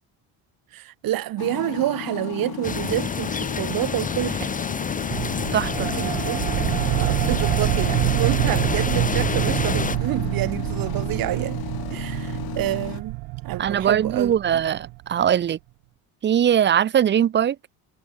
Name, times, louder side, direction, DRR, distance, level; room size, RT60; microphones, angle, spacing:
voice 1, 0.7-4.5 5.8-6.4 7.0-11.6 11.9-13.2 13.4-14.6, right 14 dB, 55° right, 2.5 m, -28 dB
sound 1, 1.4-13.0, left 16 dB, 65° left, 2.1 m, -34 dB
sound 2, 2.6-10.0, left 5 dB, 20° left, 1.9 m, -28 dB
sound 3, 5.1-15.3, right 23 dB, 80° right, 1.0 m, -26 dB
voice 2, 5.5-5.9 13.6-15.6 16.2-17.6, right 9 dB, 30° right, 0.5 m, -21 dB
cardioid pair, 140°, 41 cm